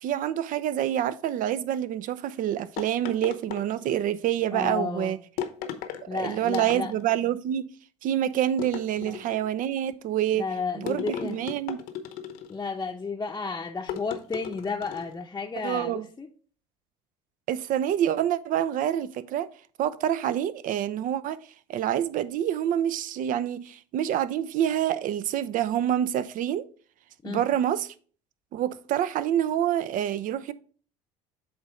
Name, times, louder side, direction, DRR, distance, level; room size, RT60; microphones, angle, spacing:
voice 1, 0.0-5.2 6.1-7.7 8.0-10.5 10.8-11.8 15.6-16.1 17.5-19.5 19.8-21.4 21.7-26.6 27.2-27.9 28.5-30.5, right 11 dB, 55° right, 0.5 m, -27 dB
sound 1, 2.8-4.1 5.4-6.0 6.5-7.2 8.6-9.5 10.9-12.6 13.9-15.2, left 9 dB, 70° left, 0.9 m, -36 dB
voice 2, 4.5-5.1 6.1-6.9 9.0-9.2 10.4-11.4 12.5-16.3 27.2-27.4, left 4 dB, 20° left, 0.7 m, -32 dB
8.0 x 3.2 x 4.9 m
hypercardioid pair, 75°, 16 cm